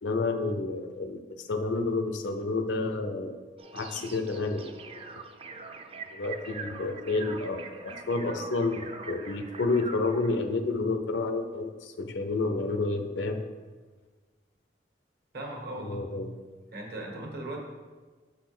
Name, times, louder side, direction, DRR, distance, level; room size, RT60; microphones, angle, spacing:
voice 1, 0.0-3.4 3.7-5.0 6.1-8.8 9.1-13.4 15.8-16.3, left 3 dB, 90° left, 7 dB, 0.6 m, -30 dB
sound 1, 3.6-10.4, right 4 dB, 35° right, 0.5 m, -43 dB
voice 2, 15.3-16.0 16.7-17.6, right 1 dB, 60° right, 0 dB, 1.4 m, -38 dB
6.1 x 4.2 x 6.0 m, 1.4 s
head